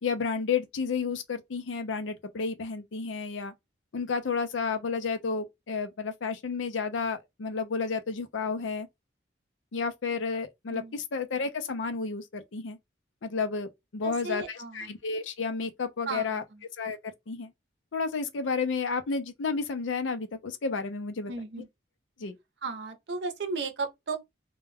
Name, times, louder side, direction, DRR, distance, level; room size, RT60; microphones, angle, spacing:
voice 1, 0.0-3.5 3.9-8.9 9.7-12.8 13.2-16.4 16.8-17.5 17.9-21.3 22.2-22.3, left 5 dB, 85° left, 0.5 m, -31 dB
voice 2, 14.0-14.9 16.1-16.4 21.3-21.7 22.6-24.2, right 4 dB, 65° right, 0.6 m, -35 dB
2.2 x 2.2 x 3.3 m
head